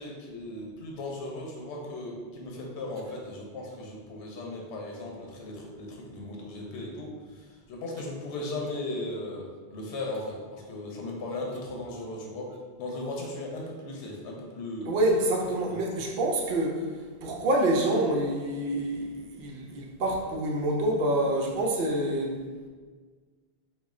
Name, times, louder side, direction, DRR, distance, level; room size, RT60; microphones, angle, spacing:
voice 1, 0.0-12.5 12.8-14.9 15.7-15.8, left 2 dB, 80° left, -1 dB, 0.9 m, -37 dB
voice 2, 14.8-16.8 17.2-22.4, right 1 dB, 60° right, -1 dB, 0.6 m, -27 dB
3.0 x 2.4 x 3.6 m, 1.5 s
omnidirectional pair, 1.1 m